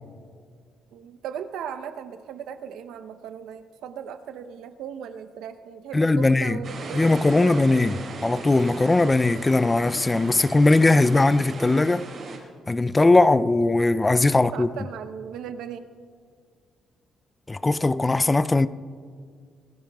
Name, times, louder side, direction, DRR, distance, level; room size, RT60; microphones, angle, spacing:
voice 1, 0.9-8.0 14.4-15.9, right 8 dB, 85° right, 0.8 m, -37 dB
voice 2, 5.9-6.6 6.9-7.9 8.2-12.1 12.7-14.7 17.5-18.7, left 2 dB, 20° left, 0.4 m, -19 dB
sound 1, 6.6-12.4, right 4 dB, 60° right, 4.7 m, -37 dB
25.5 x 18.5 x 2.3 m
cardioid pair, 90°, 0 cm